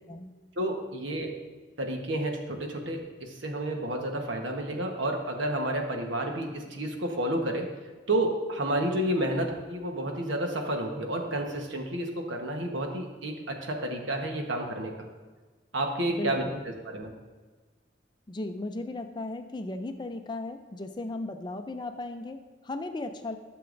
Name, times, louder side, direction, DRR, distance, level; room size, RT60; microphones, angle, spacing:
voice 1, 0.6-1.3 1.8-7.7 8.1-14.9 15.7-16.4 16.8-17.1, right 1 dB, 85° right, 2 dB, 1.2 m, -30 dB
voice 2, 16.1-16.6 18.3-23.4, left 2 dB, 25° left, 7 dB, 0.4 m, -36 dB
12.5 x 6.8 x 2.6 m, 1.4 s
head